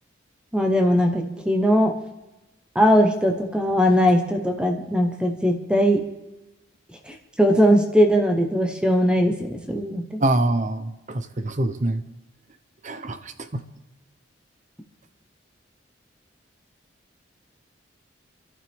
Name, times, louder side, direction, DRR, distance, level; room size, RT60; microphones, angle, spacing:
voice 1, 0.5-1.9 2.7-6.0 7.1-10.2, equal, 5° right, 4 dB, 1.0 m, -20 dB
voice 2, 10.2-12.0 12.8-13.6, right 2 dB, 40° right, 10 dB, 0.7 m, -25 dB
26.5 x 11.5 x 3.5 m, 0.98 s
head